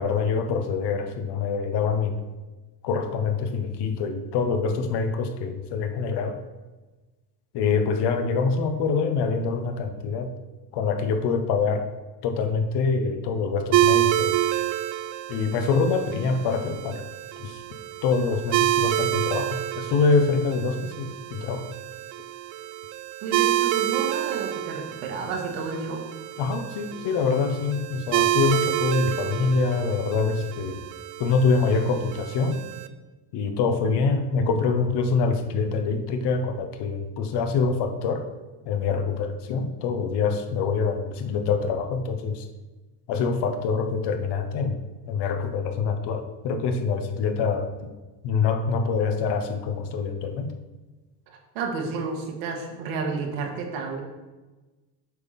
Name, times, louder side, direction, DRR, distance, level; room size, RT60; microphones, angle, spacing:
voice 1, 0.0-2.2 2.8-6.4 7.5-10.3 10.7-11.9 12.2-14.4 15.3-17.0 17.4-17.6 18.0-21.7 26.4-30.8 31.2-32.6 33.3-38.3 38.7-42.4 43.1-44.8 45.1-47.7 48.2-50.5, left 5 dB, 55° left, 6 dB, 1.0 m, -25 dB
sound 1, 13.7-32.9, right 14 dB, 45° right, 0.4 m, -28 dB
voice 2, 23.2-26.0 41.0-41.1 51.3-54.0, right 4 dB, 75° right, 2 dB, 1.6 m, -31 dB
8.1 x 3.5 x 5.7 m, 1.2 s
supercardioid pair, 105°, 48 cm